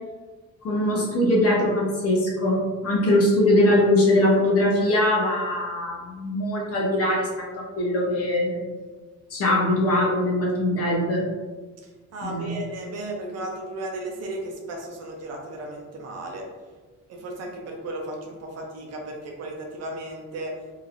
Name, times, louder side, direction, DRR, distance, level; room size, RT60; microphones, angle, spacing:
voice 1, 0.6-7.5 7.8-8.6 9.3-11.2 12.2-12.6, left 1 dB, 50° left, -2 dB, 0.8 m, -22 dB
voice 2, 12.1-16.4 17.1-20.5, right 2 dB, 55° right, 1 dB, 0.6 m, -35 dB
2.9 x 2.9 x 2.5 m, 1.3 s
cardioid pair, 175°, 31 cm